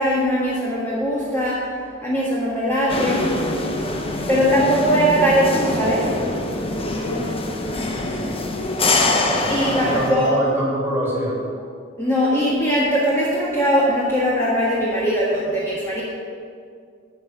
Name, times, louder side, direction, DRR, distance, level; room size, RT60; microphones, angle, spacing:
voice 1, 0.0-1.6 2.0-3.3 4.3-6.1 9.5-10.3 12.0-16.0, equal, 15° left, -7 dB, 1.5 m, -20 dB
sound 1, 2.9-10.1, left 2 dB, 30° left, 0.9 m, -24 dB
voice 2, 7.9-11.4, equal, 10° right, -5 dB, 2.6 m, -27 dB
8.6 x 5.7 x 8.1 m, 2.2 s
head